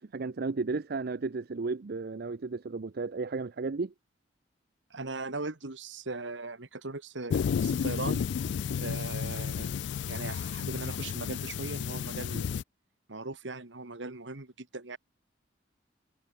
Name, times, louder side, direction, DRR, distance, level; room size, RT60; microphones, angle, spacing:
voice 1, 0.0-3.9, right 4 dB, 55° right, 0.6 m, -34 dB
voice 2, 4.9-8.2 8.8-9.7 10.1-12.5 13.1-15.0, right 3 dB, 80° right, 2.0 m, -39 dB
sound 1, 7.3-12.6, left 7 dB, 70° left, 0.3 m, -32 dB
head